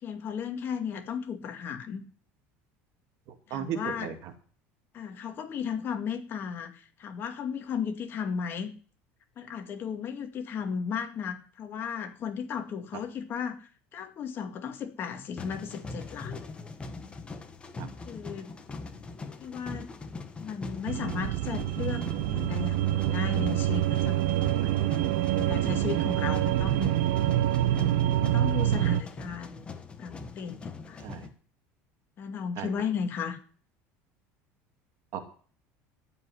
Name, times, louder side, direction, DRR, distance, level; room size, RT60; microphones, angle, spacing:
voice 1, 0.0-2.0 3.5-4.1 4.9-8.7 9.4-16.4 18.1-18.6 19.4-19.9 20.4-22.1 22.3-24.9 25.4-26.9 28.2-29.7 30.0-31.1 32.2-33.4, left 7 dB, 40° left, 5 dB, 2.2 m, -35 dB
voice 2, 3.5-4.1 17.8-17.9 31.0-31.3 32.6-32.7 35.1-35.2, right 9 dB, 60° right, 6 dB, 2.4 m, -35 dB
sound 1, 15.4-31.3, left 3 dB, 20° left, 1.5 m, -42 dB
sound 2, 20.9-29.0, right 13 dB, 85° right, 1.0 m, -26 dB
15.0 x 5.6 x 9.8 m, 0.44 s
cardioid pair, 140°, 6 cm